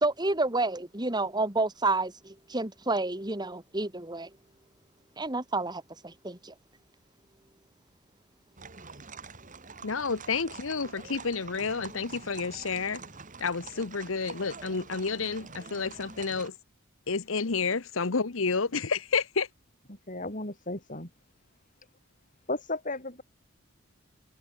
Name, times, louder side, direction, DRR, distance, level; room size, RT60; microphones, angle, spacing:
voice 1, 0.0-4.3 5.2-6.5, right 2 dB, 20° right, 2.6 m, -30 dB
sound 1, 8.6-16.5, right 4 dB, 40° right, 3.1 m, -46 dB
voice 2, 9.8-13.0 13.4-16.5 17.1-19.5, left 4 dB, 70° left, 1.0 m, -30 dB
voice 3, 19.9-21.1 22.5-23.2, left 2 dB, 40° left, 7.8 m, -35 dB
head